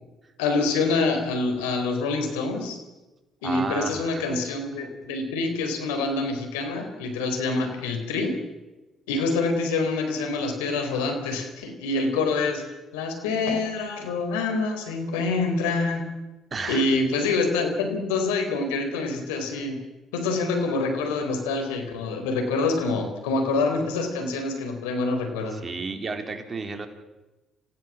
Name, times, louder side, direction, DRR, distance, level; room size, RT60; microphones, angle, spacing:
voice 1, 0.4-2.8 3.4-8.4 9.1-12.6 12.9-16.0 16.7-19.8 20.1-25.6, left 3 dB, 90° left, 5 dB, 4.2 m, -26 dB
voice 2, 3.4-4.3 4.8-4.9 16.5-16.9 25.5-26.9, right 4 dB, 35° right, 5 dB, 4.2 m, -32 dB
29.5 x 16.0 x 7.6 m, 1.1 s
hypercardioid pair, 60°, 0 cm